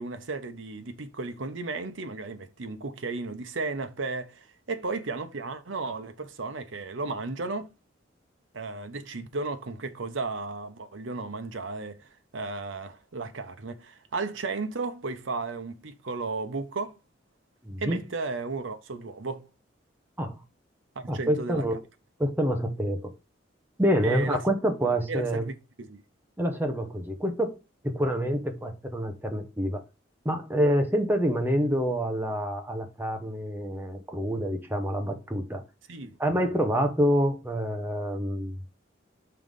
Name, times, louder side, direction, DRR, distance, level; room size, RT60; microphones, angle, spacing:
voice 1, 0.0-7.7 8.5-17.0 17.8-19.5 21.0-21.6 24.0-24.4 25.1-26.0 35.9-36.2, right 3 dB, 80° right, 0.9 m, -34 dB
voice 2, 17.6-18.0 20.2-20.4 21.1-21.8 22.2-23.0 23.8-25.5 26.4-27.5 27.8-29.8 30.2-35.6 36.2-38.6, equal, 10° right, 1.1 m, -27 dB
5.6 x 3.9 x 5.2 m
head